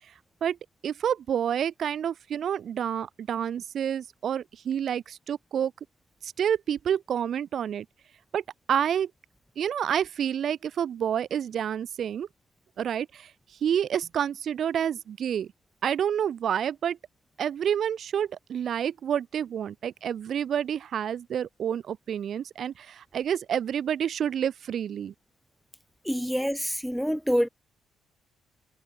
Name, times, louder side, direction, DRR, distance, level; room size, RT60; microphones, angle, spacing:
voice 1, 0.8-5.7 6.2-7.8 8.3-8.4 8.7-9.1 9.6-12.3 12.8-13.3 13.6-15.5 15.8-17.0 17.4-25.1, right 9 dB, 60° right, 2.9 m, -28 dB
voice 2, 26.1-27.5, equal, ahead, 3.9 m, -26 dB
cardioid pair, 90°, 0 cm